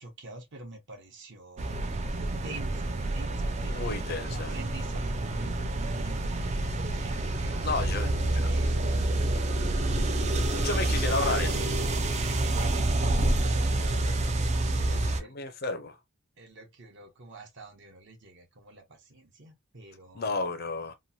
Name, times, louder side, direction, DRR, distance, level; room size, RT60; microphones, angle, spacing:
voice 1, 0.0-2.0 2.3-9.2 10.4-11.7 12.2-15.4 16.4-20.6, right 2 dB, 55° right, 0.9 m, -47 dB
sound 1, 1.6-15.2, right 2 dB, 30° right, 0.3 m, -28 dB
voice 2, 3.7-4.5 7.6-8.1 10.6-11.5 14.0-14.2 14.9-16.0 20.1-20.9, left 3 dB, 45° left, 0.5 m, -32 dB
3.0 x 2.1 x 2.6 m
head